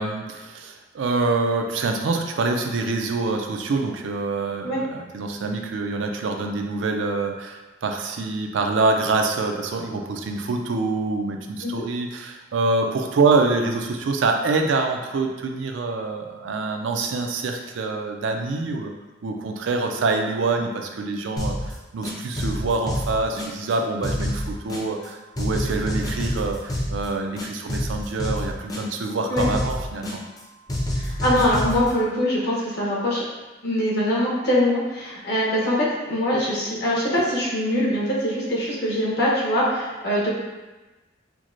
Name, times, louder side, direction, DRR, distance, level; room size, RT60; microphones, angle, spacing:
voice 1, 0.0-18.9 19.2-30.2, right 3 dB, 85° right, 3 dB, 0.4 m, -25 dB
sound 1, 21.4-21.7 22.0-23.7 24.0-25.1 25.4-27.1 27.4-29.1 29.4-30.4 30.7-31.9, equal, 20° left, 0.5 m, -28 dB
voice 2, 31.0-33.2 33.6-40.3, left 1 dB, 60° left, -6 dB, 1.0 m, -23 dB
4.5 x 2.1 x 2.5 m, 1.1 s
head